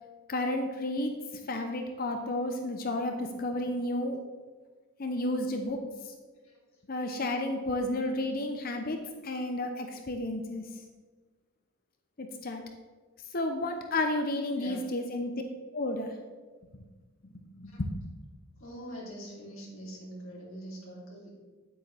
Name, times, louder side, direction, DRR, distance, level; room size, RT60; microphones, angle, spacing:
voice 1, 0.3-1.1 1.5-4.2 5.0-5.8 6.9-9.0 9.2-10.6 12.2-12.6 13.3-15.3 15.7-16.1 17.6-17.9, left 1 dB, 40° left, 5 dB, 0.7 m, -31 dB
voice 2, 6.4-6.8 14.5-14.8 17.6-17.8 18.6-21.3, equal, 65° left, -5 dB, 3.2 m, -44 dB
9.6 x 8.4 x 3.4 m, 1.4 s
head